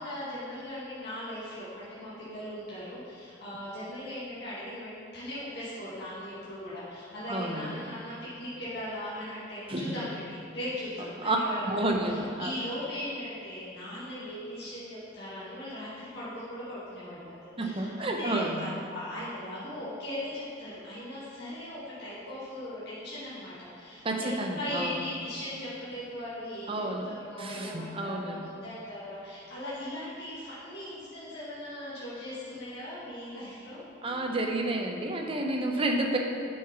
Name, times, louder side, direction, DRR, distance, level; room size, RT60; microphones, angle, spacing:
voice 1, 0.0-33.8, left 1 dB, 55° left, -10 dB, 2.1 m, -39 dB
voice 2, 7.3-7.7 9.7-9.9 11.2-11.4 11.6-12.5 17.6-18.7 24.0-24.9 26.7-27.1 27.4-28.4 34.0-36.2, right 2 dB, 30° right, 1 dB, 0.8 m, -30 dB
7.9 x 5.7 x 6.0 m, 2.8 s
head